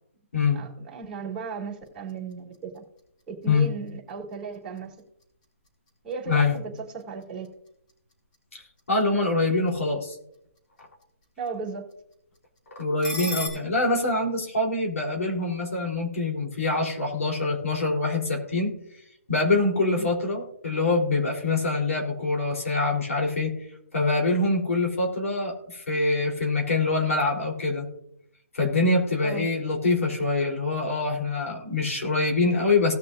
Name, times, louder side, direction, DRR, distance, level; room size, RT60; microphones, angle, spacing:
voice 1, 0.5-2.8 3.3-4.9 6.0-7.5 11.4-11.8 20.0-20.1 29.2-29.5, right 5 dB, 10° right, -8 dB, 2.9 m, -36 dB
sound 1, 1.7-13.5, left 1 dB, 35° left, 4.4 m, -45 dB
voice 2, 6.3-6.6 8.9-10.2 12.7-18.7 19.3-23.5 23.9-27.9 28.5-32.9, left 3 dB, 75° left, 0 dB, 3.8 m, -24 dB
18.5 x 6.5 x 2.7 m, 0.77 s
hypercardioid pair, 165°, 8 cm